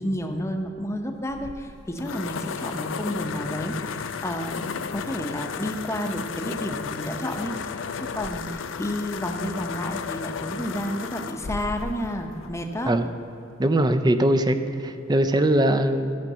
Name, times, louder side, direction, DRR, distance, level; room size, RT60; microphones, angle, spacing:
voice 1, 0.0-12.9, equal, 15° left, 4 dB, 0.8 m, -31 dB
sound 1, 1.3-13.1, left 6 dB, 85° left, 0.5 m, -34 dB
voice 2, 13.6-16.2, right 1 dB, 20° right, 9 dB, 0.5 m, -21 dB
13.0 x 5.1 x 6.7 m, 2.9 s
head